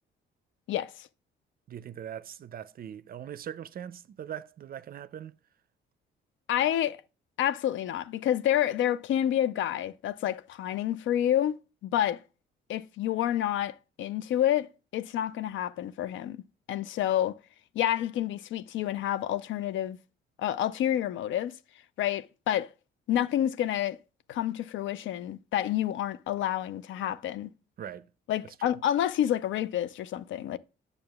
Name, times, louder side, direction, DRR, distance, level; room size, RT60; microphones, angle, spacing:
voice 1, 0.7-1.1 6.5-7.0 7.4-11.6 11.8-12.2 12.7-16.4 16.7-17.4 17.7-20.0 20.4-21.5 22.0-22.7 23.1-24.0 24.3-27.5 28.3-30.6, left 11 dB, 75° left, 0.5 m, -29 dB
voice 2, 1.7-5.3 27.8-28.1 28.4-28.7, right 9 dB, 50° right, 0.4 m, -41 dB
8.6 x 6.8 x 2.3 m
cardioid pair, 90°, 20 cm